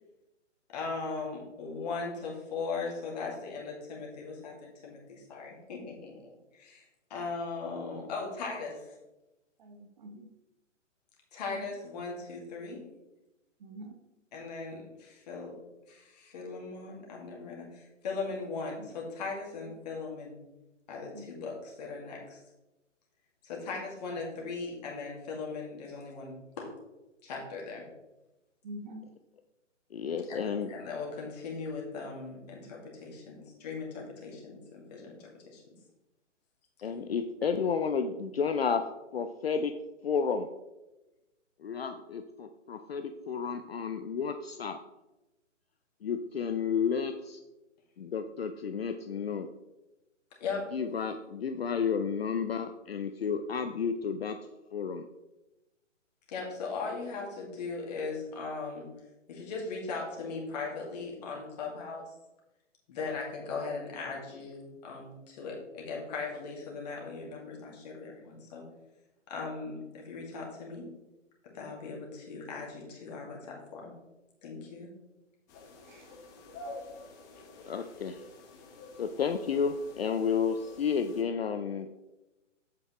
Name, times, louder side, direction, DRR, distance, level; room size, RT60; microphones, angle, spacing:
voice 1, 0.7-4.5 4.8-6.8 7.1-8.8 11.3-12.8 14.3-15.6 15.9-20.4 20.9-22.4 23.4-26.7 27.2-27.9 30.3-35.6 36.9-37.1 50.4-50.7 56.3-58.9 59.3-62.1 62.9-68.6 69.3-70.9 71.4-73.9 74.4-74.9, left 4 dB, 35° left, -1 dB, 2.2 m, -39 dB
voice 2, 9.6-10.3 11.5-11.7 13.6-14.0 18.8-18.9 21.1-21.5 28.6-29.0 75.8-76.1, right 1 dB, 35° right, 4 dB, 1.0 m, -46 dB
voice 3, 29.9-30.7 36.8-38.9 39.1-39.7 40.0-40.5 41.6-44.8 46.0-47.4 48.0-49.5 50.7-54.4 54.7-55.1 77.7-78.2 79.0-82.0, left 6 dB, 55° left, 8 dB, 0.5 m, -31 dB
sound 1, 75.5-81.2, left 2 dB, 15° left, 0.7 m, -48 dB
8.2 x 7.7 x 3.1 m, 1.0 s
figure-of-eight pair, 135°, 38 cm